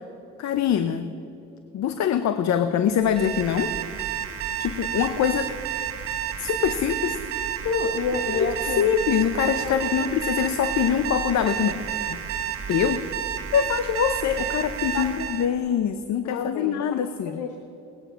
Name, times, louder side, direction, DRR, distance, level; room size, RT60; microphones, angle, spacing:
voice 1, 0.4-1.1 1.7-3.7 4.6-5.5 6.4-7.2 8.3-11.8 12.1-12.2 12.7-13.0 13.5-17.4, left 8 dB, 65° left, 11 dB, 0.7 m, -24 dB
Alarm, 3.0-15.5, right 10 dB, 50° right, 1.4 m, -30 dB
voice 2, 7.6-8.9 9.6-10.1 11.0-11.1 14.9-15.1 16.2-17.0 17.3-17.6, left 5 dB, 85° left, 5 dB, 1.1 m, -29 dB
19.0 x 8.7 x 5.6 m, 2.8 s
cardioid pair, 90°, 30 cm